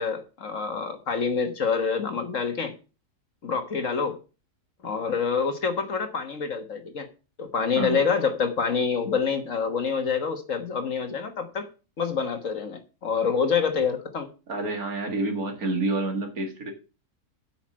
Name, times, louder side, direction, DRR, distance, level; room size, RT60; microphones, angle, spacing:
voice 1, 0.0-2.7 3.4-4.2 4.8-7.1 7.4-11.7 12.0-14.3, left 5 dB, 55° left, 1.6 m, -27 dB
voice 2, 14.5-16.7, right 2 dB, 65° right, 2.5 m, -28 dB
8.7 x 5.8 x 7.3 m
omnidirectional pair, 1.7 m